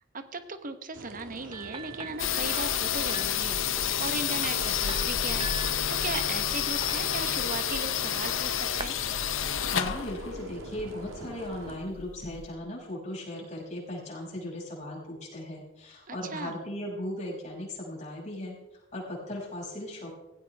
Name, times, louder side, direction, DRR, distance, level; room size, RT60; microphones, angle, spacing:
voice 1, 0.1-8.9 16.1-16.6, right 3 dB, 40° right, 9 dB, 1.2 m, -37 dB
sound 1, 0.9-11.8, right 2 dB, 85° right, 1.5 m, -45 dB
sound 2, 1.5-9.0, right 4 dB, 25° right, 0.7 m, -44 dB
sound 3, 2.2-12.5, left 9 dB, 75° left, 0.8 m, -30 dB
voice 2, 9.7-18.5 18.9-20.1, left 1 dB, 35° left, -4 dB, 6.3 m, -37 dB
17.5 x 16.0 x 3.5 m, 1.0 s
head